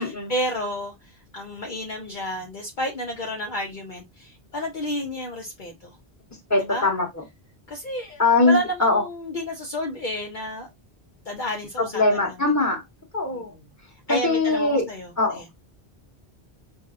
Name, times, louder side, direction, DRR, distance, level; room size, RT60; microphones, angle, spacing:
voice 1, 0.0-5.7 6.6-6.9 7.7-10.7 11.3-12.4 13.3-13.6 14.1-15.5, equal, 50° left, 0.9 m, -31 dB
voice 2, 6.5-7.1 8.2-9.0 11.8-12.8 13.1-13.5 14.1-14.9 15.2-15.4, left 3 dB, 15° left, 1.3 m, -21 dB
5.3 x 2.7 x 2.5 m
omnidirectional pair, 1.1 m